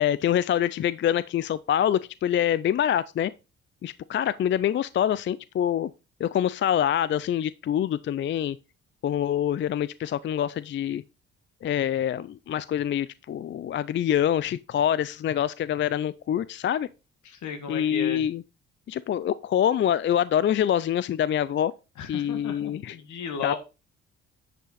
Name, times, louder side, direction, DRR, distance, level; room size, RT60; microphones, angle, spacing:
voice 1, 0.0-3.3 3.8-5.9 6.2-8.6 9.0-11.0 11.6-16.9 17.7-18.4 18.9-21.7 22.1-23.5, left 10 dB, 40° left, 0.4 m, -25 dB
voice 2, 17.3-18.2 22.0-23.6, left 7 dB, 70° left, 1.8 m, -34 dB
9.7 x 5.6 x 4.0 m
cardioid pair, 90°, 30 cm